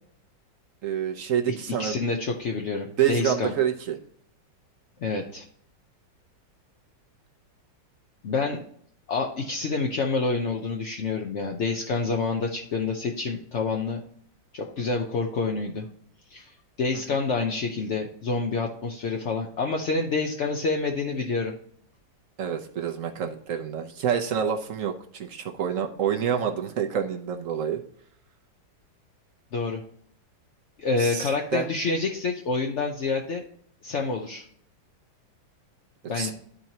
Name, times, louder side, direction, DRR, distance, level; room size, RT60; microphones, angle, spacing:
voice 1, 0.8-2.0 3.0-4.0 22.4-27.8 31.0-31.7 36.2-36.3, right 8 dB, 60° right, 4 dB, 0.9 m, -27 dB
voice 2, 1.7-3.5 5.0-5.4 8.2-8.6 9.1-14.0 14.5-15.9 16.3-21.5 29.5-29.8 30.8-33.4 33.8-34.5 36.1-36.3, left 4 dB, 60° left, 1 dB, 0.8 m, -28 dB
13.0 x 4.5 x 2.8 m, 0.63 s
omnidirectional pair, 2.0 m